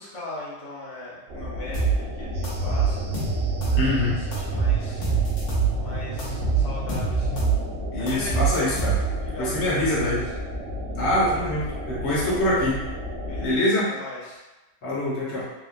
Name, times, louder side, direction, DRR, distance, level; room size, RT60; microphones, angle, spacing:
voice 1, 0.0-3.1 3.7-5.1 5.8-7.5 8.0-8.8 9.2-10.2 12.0-12.4 13.2-14.4, left 2 dB, 45° left, -7 dB, 0.4 m, -39 dB
sound 1, 1.3-13.6, left 1 dB, 85° right, 0.5 m, -33 dB
sound 2, 1.7-2.0 2.4-3.9 4.3-5.7 6.2-7.6 8.1-9.3, right 6 dB, 70° left, 1.4 m, -24 dB
sound 3, 2.3-7.4, right 5 dB, 65° right, 0.9 m, -33 dB
voice 2, 3.8-4.2 7.9-9.0 9.4-10.3 10.9-12.8 13.4-13.9 14.8-15.4, left 1 dB, 90° left, -6 dB, 1.5 m, -24 dB
3.5 x 2.1 x 2.5 m, 1.1 s
omnidirectional pair, 1.8 m